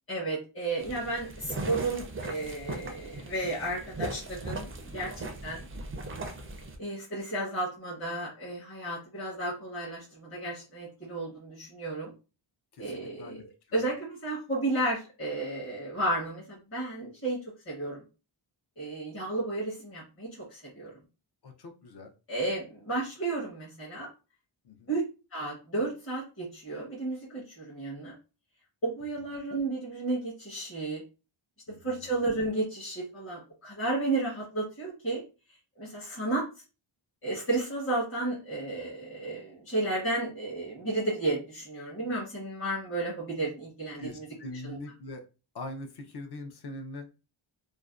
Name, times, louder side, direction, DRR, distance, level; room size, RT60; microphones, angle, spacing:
voice 1, 0.1-5.6 6.8-12.1 12.8-13.4 13.7-17.4 17.7-18.0 18.8-21.0 22.3-24.1 24.9-25.0 25.3-28.1 28.8-31.0 31.8-35.2 35.8-36.5 37.2-44.3 44.5-44.8, right 2 dB, 25° left, -6 dB, 0.8 m, -33 dB
sound 1, 0.8-6.8, right 2 dB, 30° right, 0.3 m, -38 dB
voice 2, 12.8-13.4 21.4-22.1 24.6-24.9 31.7-32.1 44.0-45.2 45.5-47.1, left 2 dB, 55° left, 4 dB, 0.6 m, -42 dB
2.5 x 2.1 x 2.3 m, 0.32 s
wide cardioid pair, 130°, 49 cm